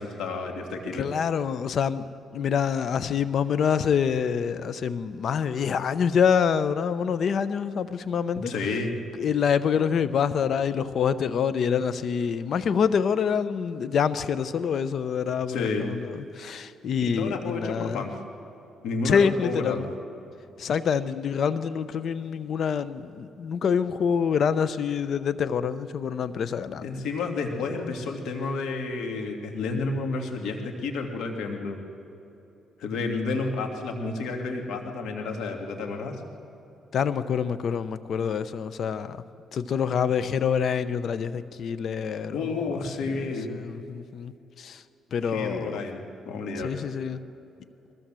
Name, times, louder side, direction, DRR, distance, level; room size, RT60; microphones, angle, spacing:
voice 1, 0.0-1.1 8.5-8.9 15.5-15.9 17.0-18.1 18.8-19.9 26.8-31.8 32.8-36.2 42.3-43.5 45.2-46.7, left 3 dB, 80° left, 2.4 m, -31 dB
voice 2, 0.9-2.0 2.3-8.5 9.2-18.0 19.0-19.9 20.6-26.9 36.9-39.2 39.5-44.3 44.6-44.8 45.1-45.8 46.6-47.2, left 7 dB, 60° left, 0.8 m, -26 dB
21.0 x 16.0 x 7.6 m
cardioid pair, 90°, 0 cm